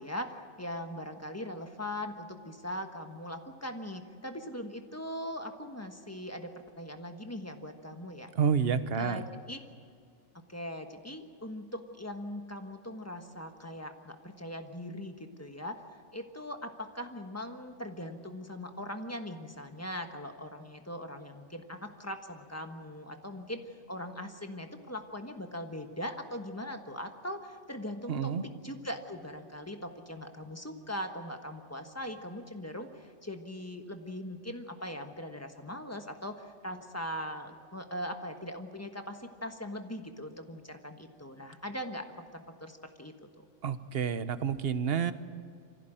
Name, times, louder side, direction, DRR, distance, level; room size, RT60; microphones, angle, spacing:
voice 1, 0.0-8.3 9.0-9.6 10.5-28.3 28.6-43.3, equal, 15° left, 6 dB, 1.3 m, -40 dB
voice 2, 8.4-9.2 28.1-28.4 43.6-45.1, right 7 dB, 55° right, 12 dB, 1.1 m, -29 dB
25.0 x 15.5 x 9.1 m, 2.1 s
omnidirectional pair, 1.3 m